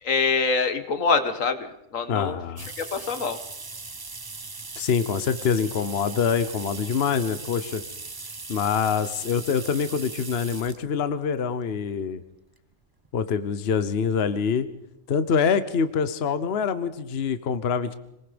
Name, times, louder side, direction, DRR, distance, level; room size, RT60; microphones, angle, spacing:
voice 1, 0.0-1.7 1.9-2.4 2.8-3.4, left 4 dB, 85° left, 9 dB, 1.8 m, -24 dB
voice 2, 2.1-2.7 4.8-7.8 8.5-12.2 13.1-14.7 15.1-17.9, left 6 dB, 55° left, 13 dB, 1.1 m, -25 dB
sound 1, 2.6-10.8 11.7-11.8 13.1-13.2 13.5-13.6 13.9-14.0, right 3 dB, 25° right, 0.6 m, -39 dB
26.5 x 20.0 x 5.2 m, 0.82 s
omnidirectional pair, 1.3 m